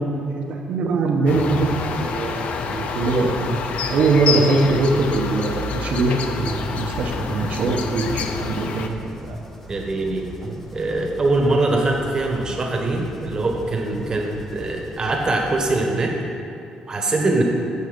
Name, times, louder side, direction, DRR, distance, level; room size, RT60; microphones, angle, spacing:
voice 1, 0.0-1.6 1.9-3.6 3.9-9.0 9.2-9.4 10.4-10.6, right 3 dB, 65° right, 1 dB, 1.0 m, -22 dB
sound 1, 1.3-8.9, left 5 dB, 65° left, 0.6 m, -27 dB
sound 2, 6.3-15.7, left 1 dB, 10° left, 0.8 m, -41 dB
voice 2, 9.7-10.3 10.7-16.1 16.9-17.4, right 2 dB, 30° right, 1 dB, 1.3 m, -22 dB
8.0 x 6.6 x 5.1 m, 2.5 s
cardioid pair, 110°, 2 cm